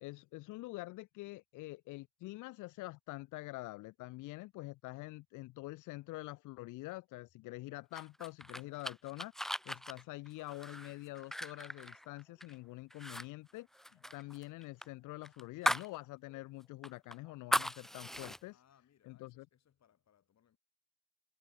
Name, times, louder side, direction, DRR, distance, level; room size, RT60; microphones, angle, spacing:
voice 1, 0.0-18.6 19.0-19.5, left 20 dB, 90° left, 0.5 m, -46 dB
sound 1, 7.9-12.5 12.9-13.2 13.5-15.9 16.3-16.4 16.8-18.4, equal, ahead, 0.5 m, -38 dB
voice 2, 8.5-9.0 13.9-14.2 18.5-20.6, left 9 dB, 60° left, 6.1 m, -70 dB
cardioid pair, 90°, 30 cm